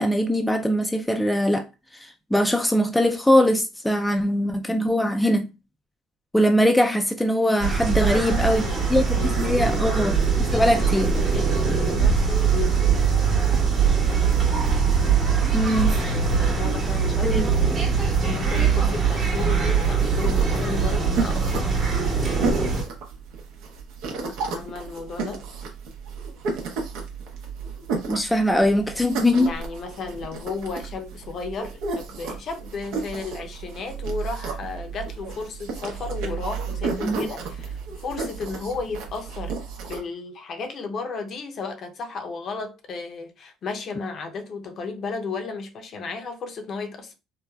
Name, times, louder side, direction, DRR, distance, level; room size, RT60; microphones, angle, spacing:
voice 1, 0.0-1.6 2.0-5.5 6.3-8.6 8.9-10.1 10.5-11.1 15.5-16.0 17.2-17.5 28.1-29.5 37.0-37.3, equal, 5° left, 0.3 m, -21 dB
sound 1, 7.6-22.8, right 5 dB, 40° right, 1.1 m, -22 dB
voice 2, 8.0-10.0 10.5-10.7 11.0-12.9 16.1-17.4 18.0-21.7 24.5-25.4 29.4-39.6 39.9-47.1, left 4 dB, 50° left, 0.6 m, -34 dB
sound 2, 20.0-40.0, right 4 dB, 75° right, 0.7 m, -33 dB
3.1 x 2.0 x 2.3 m
supercardioid pair, 90°, 0 cm